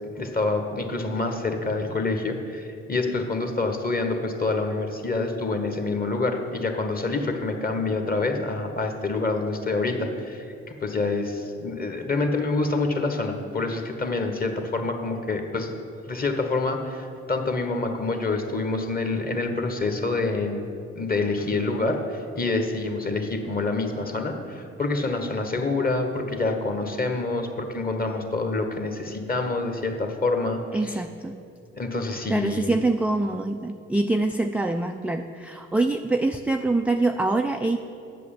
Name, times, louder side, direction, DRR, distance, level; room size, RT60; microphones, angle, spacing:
voice 1, 0.2-10.5 10.8-15.7 16.1-20.7 20.9-31.0 31.7-32.7, left 3 dB, 25° left, 5 dB, 1.4 m, -27 dB
voice 2, 30.7-31.4 32.3-37.8, right 2 dB, 5° right, 5 dB, 0.3 m, -25 dB
8.3 x 6.5 x 7.3 m, 2.5 s
hypercardioid pair, 50°, 34 cm